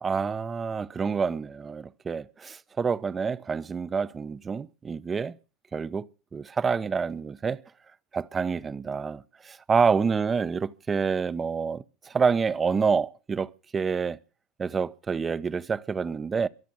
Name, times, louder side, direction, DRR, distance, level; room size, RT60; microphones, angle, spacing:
voice 1, 0.0-5.3 5.7-7.6 8.1-14.2 14.6-16.5, right 5 dB, 25° right, 0.8 m, -28 dB
23.5 x 8.2 x 6.2 m
hypercardioid pair, 75°, 0 cm